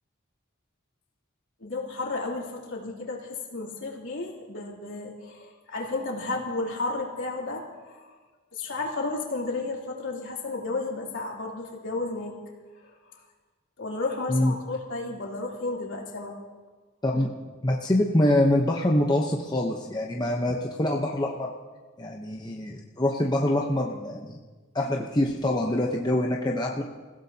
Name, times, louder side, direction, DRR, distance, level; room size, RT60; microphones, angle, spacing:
voice 1, 1.6-8.2 8.5-12.4 12.8-13.2 13.8-16.3, left 3 dB, 60° left, -3 dB, 3.3 m, -33 dB
voice 2, 17.6-21.5 22.0-24.4 24.7-26.8, left 1 dB, 20° left, -1 dB, 0.9 m, -25 dB
27.5 x 16.5 x 2.9 m, 1.3 s
head